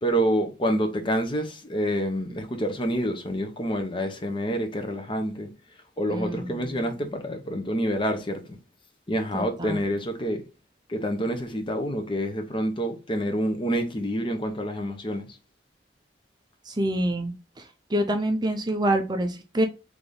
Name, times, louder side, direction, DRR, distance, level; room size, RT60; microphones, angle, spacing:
voice 1, 0.0-5.5 6.0-8.6 9.1-10.4 10.9-15.3, equal, 30° left, 0.8 m, -27 dB
voice 2, 6.1-6.9 9.3-9.8 16.7-19.7, right 1 dB, 25° right, 0.5 m, -27 dB
3.9 x 3.4 x 3.4 m
head